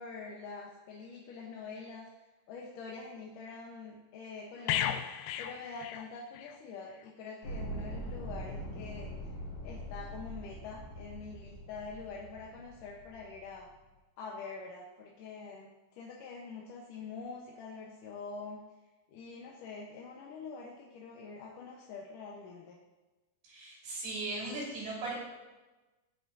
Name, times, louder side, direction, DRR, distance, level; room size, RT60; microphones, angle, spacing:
voice 1, 0.0-2.1 2.5-5.0 5.4-9.3 9.6-13.7 14.2-18.6 19.1-22.8, left 4 dB, 65° left, -3 dB, 2.4 m, -45 dB
sound 1, 4.7-6.6 6.9-7.1, left 10 dB, 85° left, 2.6 m, -35 dB
sound 2, 7.4-13.7, equal, 45° left, 3.6 m, -43 dB
voice 2, 23.4-25.1, right 2 dB, 75° right, -5 dB, 6.3 m, -38 dB
18.0 x 9.2 x 2.7 m, 1.1 s
omnidirectional pair, 4.6 m